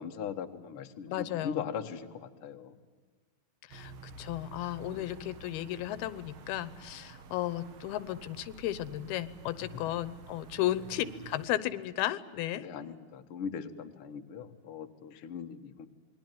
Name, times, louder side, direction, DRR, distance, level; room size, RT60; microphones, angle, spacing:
voice 1, 0.0-2.7 4.9-5.0 12.6-15.9, left 7 dB, 50° left, 5 dB, 1.8 m, -40 dB
voice 2, 1.1-1.7 3.7-3.9 4.2-12.7, left 13 dB, 85° left, 16 dB, 2.9 m, -34 dB
sound 1, 3.7-11.5, right 4 dB, 55° right, 1.5 m, -50 dB
28.0 x 21.5 x 9.2 m, 1.5 s
omnidirectional pair, 4.3 m